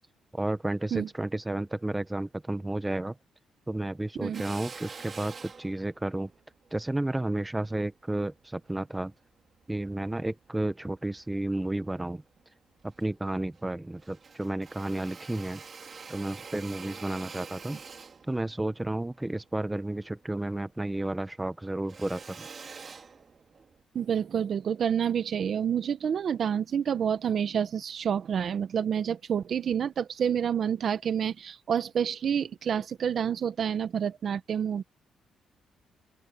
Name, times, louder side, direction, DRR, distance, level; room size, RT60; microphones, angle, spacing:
voice 1, 0.3-3.2 3.7-6.3 6.7-9.1 9.7-12.2 12.8-15.6 16.1-17.8 18.3-22.5, right 1 dB, 10° right, 1.3 m, -32 dB
Drill, 4.3-8.9 9.4-10.6 11.1-12.0 12.4-12.5 12.7-13.7 14.0-20.7 21.0-23.8, right 5 dB, 40° right, 3.9 m, -47 dB
voice 2, 23.9-34.8, right 8 dB, 55° right, 1.2 m, -28 dB
open air
cardioid pair, 90°, 0 cm